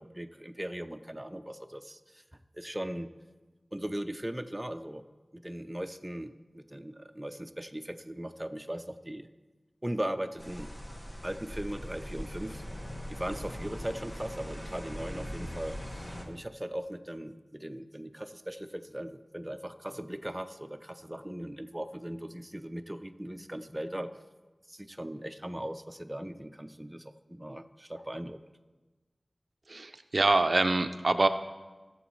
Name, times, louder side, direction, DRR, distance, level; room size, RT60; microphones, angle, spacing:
voice 1, 0.0-2.0 2.5-3.1 3.7-5.0 5.4-9.3 9.8-10.7 11.2-12.6 13.1-15.8 16.3-24.1 24.7-27.0 27.3-28.4, right 1 dB, 20° right, 7 dB, 0.6 m, -38 dB
sound 1, 10.4-16.2, equal, 30° left, 1.6 m, -41 dB
voice 2, 29.7-31.3, right 2 dB, 70° right, 8 dB, 0.4 m, -25 dB
18.0 x 7.1 x 3.1 m, 1.2 s
wide cardioid pair, 50°, 0 cm